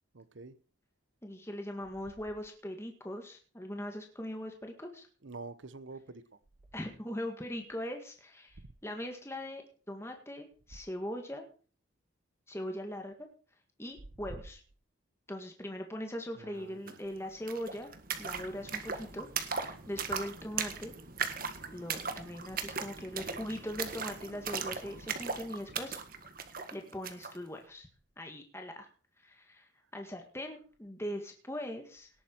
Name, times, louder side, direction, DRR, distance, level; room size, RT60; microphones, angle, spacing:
voice 1, 0.1-0.6 5.2-6.2 14.3-14.4 16.3-17.0, right 3 dB, 75° right, 1.0 m, -46 dB
voice 2, 1.2-5.1 6.7-9.6 9.9-11.4 12.5-13.3 13.8-14.6 15.3-17.9 18.2-20.9 21.7-26.0 26.7-27.9 28.2-28.9 29.2-32.1, equal, 15° left, 1.8 m, -41 dB
sound 1, 16.9-17.0 17.2-27.4, right 6 dB, 45° right, 1.7 m, -38 dB
18.5 x 8.9 x 4.6 m
head